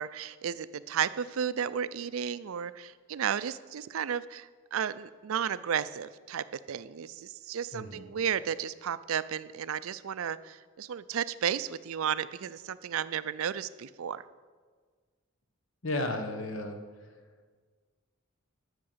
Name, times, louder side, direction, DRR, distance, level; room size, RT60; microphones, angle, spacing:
voice 1, 0.0-14.2, right 8 dB, 70° right, 16 dB, 0.4 m, -33 dB
voice 2, 7.7-8.0 15.8-16.8, left 2 dB, 60° left, 7 dB, 1.3 m, -33 dB
11.5 x 6.6 x 7.9 m, 1.5 s
head